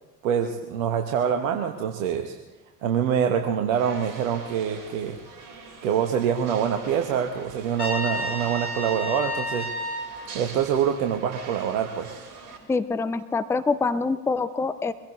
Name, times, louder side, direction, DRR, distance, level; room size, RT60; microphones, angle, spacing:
voice 1, 0.2-2.3 2.8-5.2 5.8-9.7 10.3-12.2, right 8 dB, 60° right, 5 dB, 1.3 m, -25 dB
sound 1, 3.7-12.6, right 4 dB, 40° right, 5.2 m, -44 dB
Trumpet, 7.8-10.1, left 1 dB, 85° left, 3.4 m, -30 dB
voice 2, 12.7-14.9, left 4 dB, 5° left, 13 dB, 0.6 m, -25 dB
24.0 x 16.0 x 3.2 m, 1.2 s
figure-of-eight pair, 65°, 44 cm